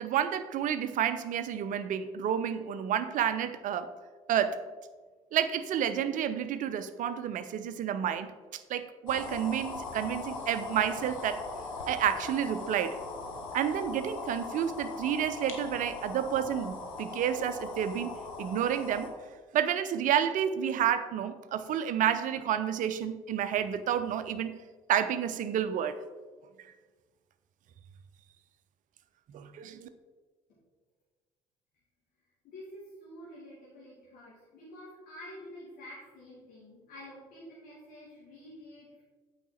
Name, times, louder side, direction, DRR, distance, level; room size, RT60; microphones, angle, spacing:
voice 1, 0.0-3.9 4.3-4.6 5.3-8.3 8.7-11.4 11.8-13.0 13.5-18.1 18.4-19.1 19.5-24.6 24.9-26.0 29.3-29.9, right 9 dB, 50° right, 11 dB, 0.6 m, -30 dB
sound 1, 9.1-19.1, left 3 dB, 80° left, 1.0 m, -40 dB
voice 2, 32.4-39.0, left 1 dB, 55° left, -8 dB, 2.5 m, -48 dB
8.1 x 4.9 x 4.3 m, 1.4 s
figure-of-eight pair, 50°, 17 cm